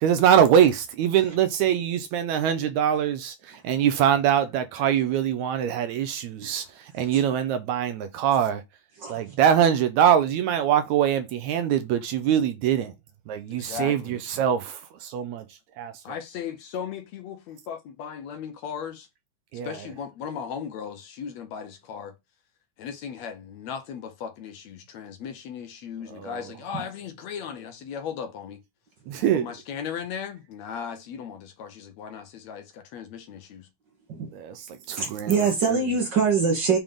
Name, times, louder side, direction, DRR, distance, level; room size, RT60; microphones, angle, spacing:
voice 1, 0.0-8.6 9.1-12.9 13.3-15.5 15.8-15.9 19.5-19.8 26.1-26.5 29.1-29.5 34.3-35.8, right 9 dB, 80° right, 1.9 m, -23 dB
voice 2, 13.5-14.2 16.0-19.1 19.6-22.2 22.8-28.6 29.3-33.7, left 7 dB, 70° left, 2.0 m, -37 dB
voice 3, 35.0-36.8, right 5 dB, 45° right, 1.7 m, -23 dB
6.9 x 3.7 x 3.7 m
omnidirectional pair, 3.5 m